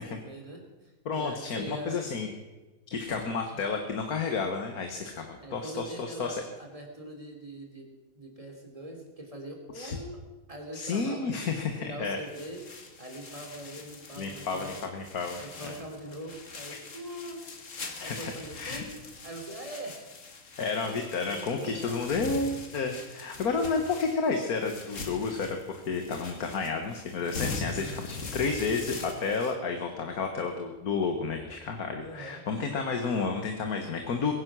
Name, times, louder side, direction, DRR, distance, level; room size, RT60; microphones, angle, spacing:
voice 1, 0.0-2.0 3.5-3.6 5.4-10.2 10.5-12.6 13.0-14.8 15.4-17.4 18.0-19.0 19.2-20.1 21.2-22.1 32.0-32.4, right 1 dB, 20° right, 2 dB, 3.1 m, -43 dB
voice 2, 1.0-2.3 2.9-6.4 9.7-10.0 10.7-12.3 14.2-15.8 16.7-16.8 18.0-18.8 20.6-34.3, left 4 dB, 75° left, 4 dB, 1.8 m, -31 dB
sound 1, 12.2-29.6, left 3 dB, 55° left, 2.0 m, -42 dB
21.5 x 10.5 x 6.2 m, 1.2 s
omnidirectional pair, 1.6 m